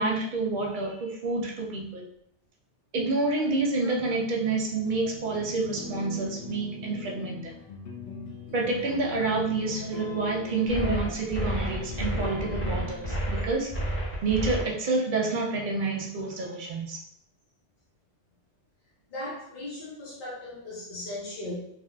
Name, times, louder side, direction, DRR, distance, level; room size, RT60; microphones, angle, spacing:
voice 1, 0.0-2.1 2.9-7.5 8.5-13.7 14.2-17.0, right 3 dB, 55° right, -1 dB, 0.6 m, -28 dB
sound 1, 4.9-13.2, left 5 dB, 75° left, 0.9 m, -40 dB
sound 2, 10.7-14.6, right 1 dB, 10° left, 1.0 m, -30 dB
voice 2, 19.1-21.7, left 1 dB, 50° left, -7 dB, 1.1 m, -37 dB
3.6 x 2.4 x 2.3 m, 0.70 s
omnidirectional pair, 1.2 m